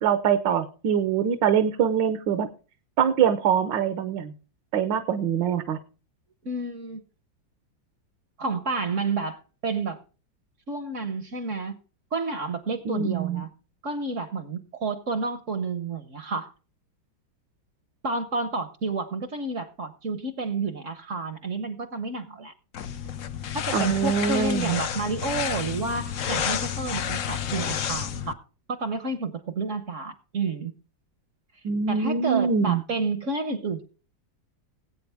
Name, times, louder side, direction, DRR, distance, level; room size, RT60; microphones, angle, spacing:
voice 1, 0.0-2.5 3.0-4.3 4.7-5.8 12.8-13.4 23.7-24.8 31.6-32.8, right 7 dB, 70° right, 9 dB, 1.5 m, -24 dB
voice 2, 6.4-7.0 8.4-10.0 10.7-11.8 12.1-13.5 13.8-16.5 18.0-22.5 23.5-28.4 28.7-30.7 31.9-33.8, right 3 dB, 50° right, 10 dB, 1.0 m, -30 dB
sound 1, 22.7-28.3, left 8 dB, 60° left, 0.8 m, -30 dB
20.0 x 8.6 x 3.5 m, 0.36 s
omnidirectional pair, 2.1 m